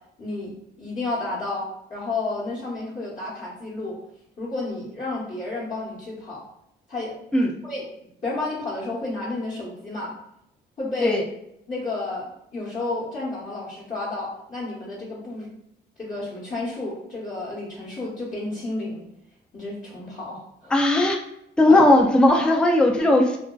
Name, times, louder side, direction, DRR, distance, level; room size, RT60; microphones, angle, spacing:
voice 1, 0.2-4.0 4.4-6.4 6.9-7.1 7.6-7.9 8.2-10.1 10.8-11.2 11.7-15.5 16.0-19.1 19.5-20.7 21.7-21.8, left 2 dB, 40° left, -8 dB, 0.9 m, -31 dB
voice 2, 20.7-21.2 21.6-23.4, left 1 dB, 5° left, 2 dB, 0.3 m, -17 dB
2.5 x 2.3 x 2.2 m, 0.77 s
cardioid pair, 90°, 20 cm